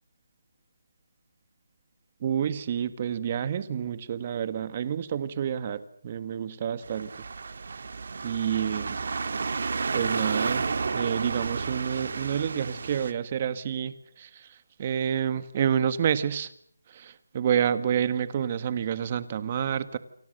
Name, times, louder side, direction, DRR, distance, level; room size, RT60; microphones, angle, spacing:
voice 1, 2.2-7.1 8.2-9.0 9.9-10.6 10.9-16.5 16.9-20.0, right 8 dB, 30° right, 13 dB, 1.5 m, -29 dB
sound 1, 6.8-13.1, right 4 dB, 55° right, 1.7 m, -31 dB
29.0 x 24.0 x 6.6 m, 0.66 s
figure-of-eight pair, 170°, 0 cm